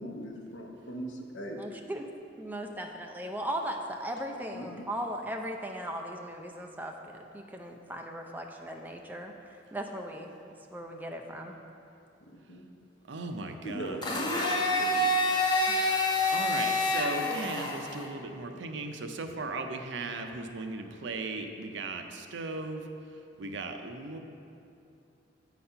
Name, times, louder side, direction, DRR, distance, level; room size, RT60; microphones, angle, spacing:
voice 1, 0.0-1.6 4.5-4.8 12.3-12.7 13.6-15.1, right 1 dB, 75° left, 1 dB, 0.9 m, -40 dB
voice 2, 1.6-2.0 2.4-10.4 10.7-11.6 15.7-15.8, right 1 dB, 10° right, 2 dB, 0.4 m, -38 dB
voice 3, 13.1-13.8 16.3-22.8 23.4-24.2, right 3 dB, 70° right, 5 dB, 0.6 m, -37 dB
Domestic sounds home sounds, 14.0-18.0, left 2 dB, 25° left, 0.7 m, -27 dB
8.5 x 4.1 x 5.6 m, 2.6 s
head